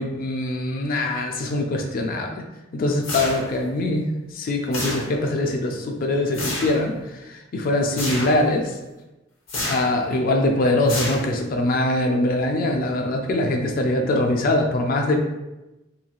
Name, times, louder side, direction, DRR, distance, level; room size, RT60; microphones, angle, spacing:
voice 1, 0.0-2.4 2.7-8.8 9.6-15.2, left 1 dB, 45° left, 3 dB, 0.3 m, -23 dB
sound 1, 3.0-3.7 4.7-5.4 6.3-6.8 8.0-8.5 9.5-10.0 10.9-11.6, left 1 dB, 85° left, 0.8 m, -29 dB
2.9 x 2.7 x 2.3 m, 1.0 s
head